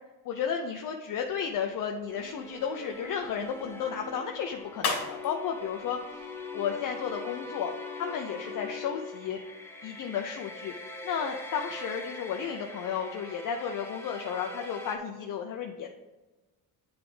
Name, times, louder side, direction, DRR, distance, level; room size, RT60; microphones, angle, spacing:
voice 1, 0.2-6.3 6.5-7.7 8.0-9.4 9.8-10.7 11.0-15.9, left 7 dB, 55° left, 3 dB, 0.6 m, -33 dB
sound 1, 1.2-7.1, left 4 dB, 75° left, 2.1 m, -40 dB
sound 2, 2.1-15.0, left 2 dB, 5° left, 0.6 m, -42 dB
9.5 x 3.4 x 3.9 m, 1.2 s
cardioid pair, 145°, 39 cm